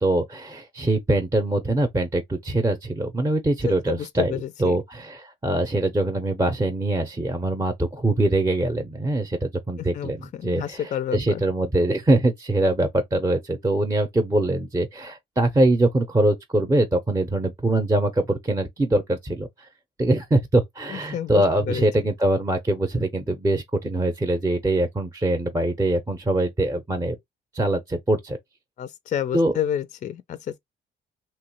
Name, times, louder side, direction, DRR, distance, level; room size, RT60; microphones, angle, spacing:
voice 1, 0.0-4.3 4.6-19.7 20.0-27.2 27.5-28.4 29.3-29.5, right 1 dB, 15° right, 0.6 m, -23 dB
voice 2, 3.7-4.8 9.8-11.4 20.9-21.9 28.8-30.6, left 9 dB, 40° left, 0.4 m, -30 dB
2.9 x 2.3 x 2.9 m
cardioid pair, 90°, 20 cm